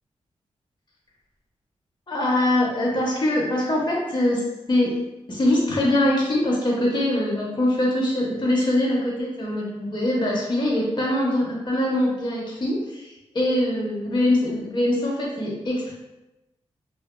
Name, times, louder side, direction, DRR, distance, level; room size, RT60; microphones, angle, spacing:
voice 1, 2.1-5.0 5.3-15.9, left 1 dB, 40° left, -3 dB, 0.7 m, -23 dB
2.6 x 2.2 x 2.2 m, 0.98 s
cardioid pair, 50°, 12 cm